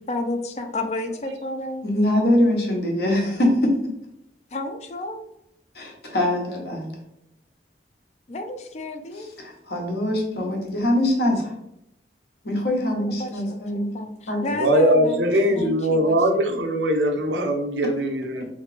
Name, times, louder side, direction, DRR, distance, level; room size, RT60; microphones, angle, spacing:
voice 1, 0.1-1.9 4.5-5.3 8.3-9.3 13.0-13.6 13.9-16.4, left 2 dB, 40° left, 6 dB, 0.4 m, -31 dB
voice 2, 1.8-3.7 5.7-6.9 9.4-11.5 12.4-14.0 14.3-14.4, left 1 dB, 60° left, 0 dB, 1.0 m, -23 dB
voice 3, 14.6-18.5, equal, 80° right, 4 dB, 0.6 m, -21 dB
3.7 x 3.2 x 3.3 m, 0.80 s
head